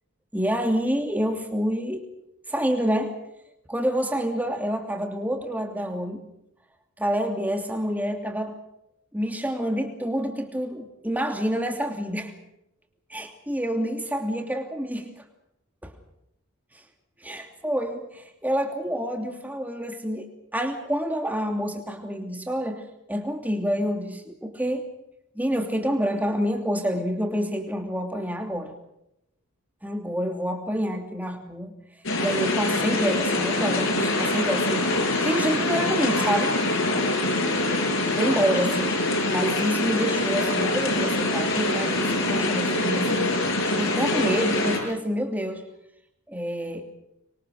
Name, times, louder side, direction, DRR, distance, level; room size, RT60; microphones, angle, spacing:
voice 1, 0.3-2.0 2.5-3.2 3.7-6.2 7.0-8.5 9.1-12.3 13.1-15.1 15.8-15.9 17.2-24.9 25.3-28.8 29.8-31.7 32.2-36.6 38.2-38.9 39.3-43.3 43.7-45.6 46.3-46.9, equal, 5° right, 4 dB, 2.8 m, -28 dB
sound 1, 32.0-44.8, left 2 dB, 60° left, 7.0 m, -24 dB
25.5 x 23.0 x 6.5 m, 0.80 s
head